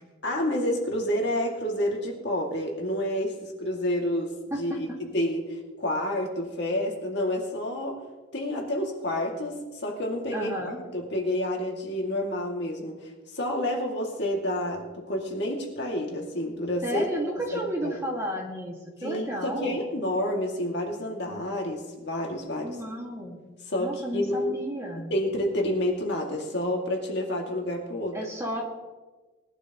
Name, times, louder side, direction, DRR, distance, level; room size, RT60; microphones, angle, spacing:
voice 1, 0.2-4.3 4.6-8.0 8.3-10.5 10.9-17.1 17.5-17.9 19.0-22.8 23.7-24.6 25.1-28.2, left 1 dB, 60° left, 0 dB, 2.4 m, -29 dB
voice 2, 10.3-10.8 16.8-19.8 22.6-23.4 23.8-25.1 28.1-28.6, equal, 15° right, -1 dB, 2.1 m, -32 dB
20.0 x 11.5 x 3.1 m, 1.2 s
head